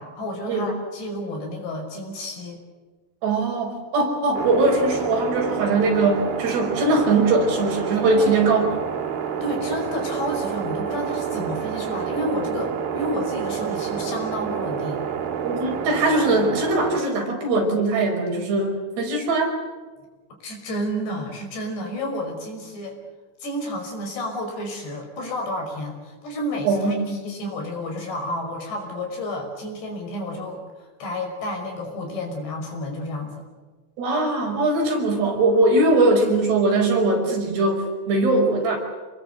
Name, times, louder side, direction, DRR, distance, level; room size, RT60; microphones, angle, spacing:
voice 1, 0.0-2.6 8.1-8.5 9.4-15.0 20.4-23.0 23.4-33.4, left 1 dB, 65° left, 3 dB, 7.5 m, -31 dB
voice 2, 3.2-8.6 15.4-19.5 26.7-27.2 34.0-38.8, right 2 dB, 60° right, 2 dB, 7.2 m, -21 dB
sound 1, 4.3-17.0, right 8 dB, 90° right, 4.9 m, -28 dB
27.5 x 21.5 x 8.0 m, 1.3 s
omnidirectional pair, 5.3 m